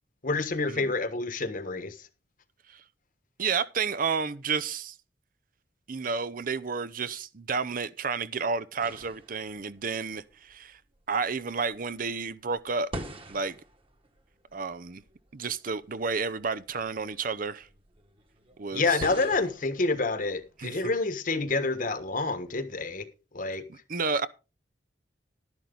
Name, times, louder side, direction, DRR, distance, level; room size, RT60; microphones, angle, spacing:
voice 1, 0.2-2.0 18.7-23.1 23.3-23.7, left 3 dB, 50° left, 1.4 m, -28 dB
voice 2, 3.4-4.9 5.9-10.8 11.1-12.9 13.3-13.6 14.5-15.0 15.3-17.7 18.6-19.0 20.6-20.8 23.7-24.3, right 5 dB, 50° right, 0.7 m, -31 dB
sound 1, 8.8-20.6, right 1 dB, 30° right, 1.6 m, -46 dB
12.0 x 10.5 x 3.9 m
head